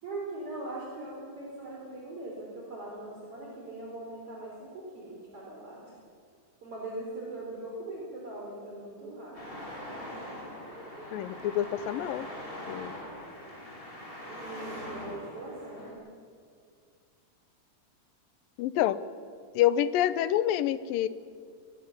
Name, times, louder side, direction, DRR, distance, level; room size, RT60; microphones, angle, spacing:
voice 1, 0.0-6.0 6.6-9.6 14.3-16.1, right 2 dB, 40° right, -3 dB, 4.6 m, -41 dB
Traffic noise roadway noise, 9.3-15.9, left 1 dB, 15° left, 5.5 m, -42 dB
voice 2, 11.1-12.3 12.7-12.9 18.6-19.0 19.6-21.1, left 12 dB, 85° left, 15 dB, 2.5 m, -27 dB
24.0 x 19.5 x 7.1 m, 2.2 s
omnidirectional pair, 3.9 m